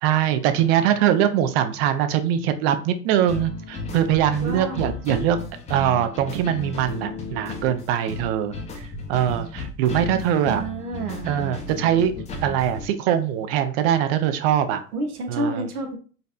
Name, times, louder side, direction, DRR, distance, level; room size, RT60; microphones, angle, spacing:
voice 1, 0.0-5.4 5.7-8.5 9.1-10.6 11.3-12.1 12.4-14.8 15.3-15.6, right 10 dB, 45° right, 9 dB, 0.4 m, -22 dB
sound 1, 3.3-12.9, left 3 dB, 15° left, 0.4 m, -34 dB
voice 2, 4.4-4.9 10.4-11.3 14.9-16.0, right 2 dB, 90° right, 4 dB, 0.7 m, -29 dB
4.0 x 2.1 x 2.4 m, 0.40 s
hypercardioid pair, 95°, 44 cm